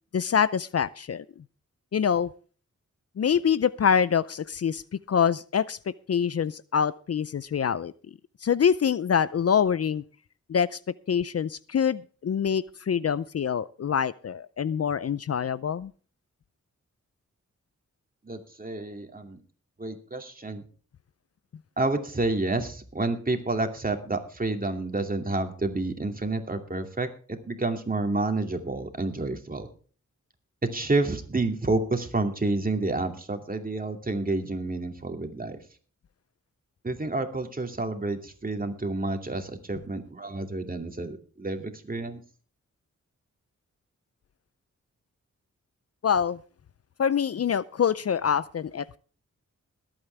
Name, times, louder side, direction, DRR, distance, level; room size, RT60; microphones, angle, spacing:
voice 1, 0.1-1.2 1.9-2.3 3.2-4.8 5.1-5.8 6.1-7.9 8.4-10.0 10.5-10.8 11.1-15.9 46.0-46.4 47.0-49.0, left 7 dB, 55° left, 18 dB, 0.5 m, -25 dB
voice 2, 18.3-19.4 19.8-20.6 21.8-29.7 30.6-35.6 36.8-42.2, right 2 dB, 30° right, 5 dB, 2.5 m, -29 dB
21.0 x 8.8 x 3.4 m, 0.41 s
cardioid pair, 70°, 30 cm